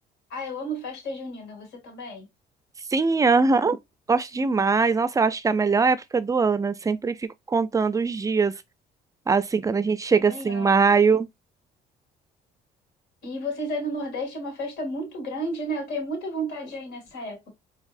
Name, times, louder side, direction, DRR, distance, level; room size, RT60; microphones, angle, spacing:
voice 1, 0.3-2.3 10.2-11.0 13.2-17.5, right 1 dB, 80° left, 2.3 m, -32 dB
voice 2, 2.9-3.8 4.1-7.1 7.5-8.5 9.3-11.3, right 4 dB, 20° right, 0.4 m, -21 dB
4.6 x 2.9 x 2.5 m
cardioid pair, 110°, 17 cm